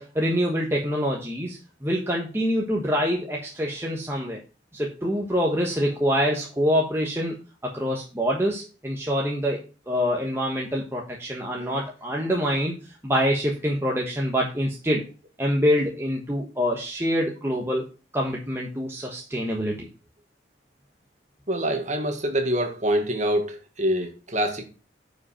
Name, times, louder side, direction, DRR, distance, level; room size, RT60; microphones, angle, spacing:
voice 1, 0.0-4.4 4.7-7.3 7.7-12.8 13.0-15.0 15.4-17.8 18.1-19.9, equal, 15° right, 1.2 m, -25 dB
voice 2, 21.5-24.6, equal, 40° right, 1.7 m, -25 dB
9.6 x 5.3 x 4.3 m
head